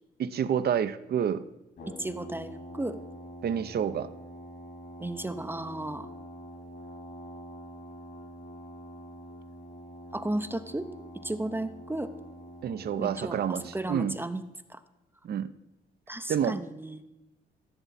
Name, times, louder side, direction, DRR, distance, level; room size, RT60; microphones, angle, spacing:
voice 1, 0.2-1.5 3.4-4.1 12.6-14.2 15.2-15.5 16.3-16.6, right 8 dB, 55° right, 13 dB, 0.7 m, -28 dB
Brass instrument, 1.8-14.0, equal, 70° left, 3.6 m, -45 dB
voice 2, 2.0-3.0 5.0-6.1 10.1-10.9 11.2-12.1 13.0-14.4 14.7-14.8 16.1-17.0, right 1 dB, 10° right, 9 dB, 0.6 m, -34 dB
15.0 x 6.9 x 4.2 m, 1.0 s
cardioid pair, 90°, 20 cm